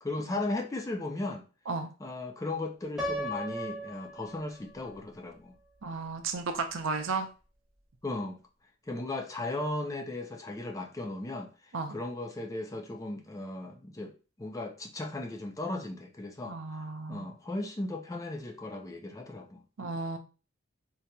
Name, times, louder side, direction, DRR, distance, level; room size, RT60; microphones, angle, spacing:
voice 1, 0.0-1.4 2.0-5.6 8.0-8.4 8.9-14.1 14.4-16.6 17.1-19.6, left 2 dB, 15° left, 0.3 m, -36 dB
Piano, 3.0-4.9, equal, 5° right, 0.8 m, -36 dB
voice 2, 5.8-7.3 11.7-11.9 16.5-17.3 19.8-20.2, right 4 dB, 70° right, 0.5 m, -34 dB
3.8 x 2.8 x 2.2 m
head